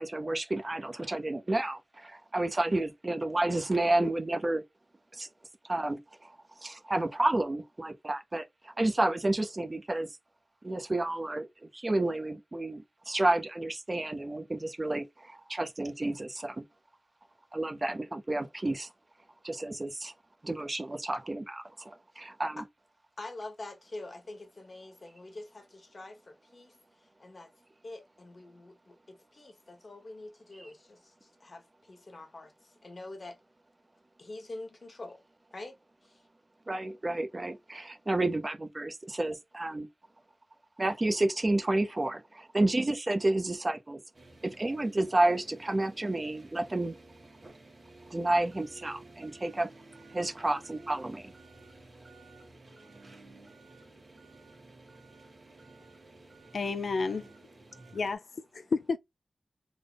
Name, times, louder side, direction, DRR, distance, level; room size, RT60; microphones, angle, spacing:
voice 1, 0.0-4.6 5.1-5.3 5.6-6.4 6.6-10.1 10.6-16.7 17.5-18.9 19.4-20.1 20.4-22.6 30.6-30.7 36.7-39.9 40.8-44.0 44.4-46.9 48.1-49.7 50.1-51.3, right 2 dB, 35° right, 0.6 m, -30 dB
voice 2, 23.2-26.7 27.2-27.5 27.8-33.4 34.2-35.2 35.5-35.7 36.0-36.2, left 2 dB, 50° left, 1.0 m, -45 dB
sound 1, 44.1-58.2, right 2 dB, 50° right, 1.5 m, -53 dB
voice 3, 56.5-57.3 57.9-59.0, left 4 dB, 85° left, 0.4 m, -31 dB
3.5 x 2.1 x 3.8 m
wide cardioid pair, 85°, 0 cm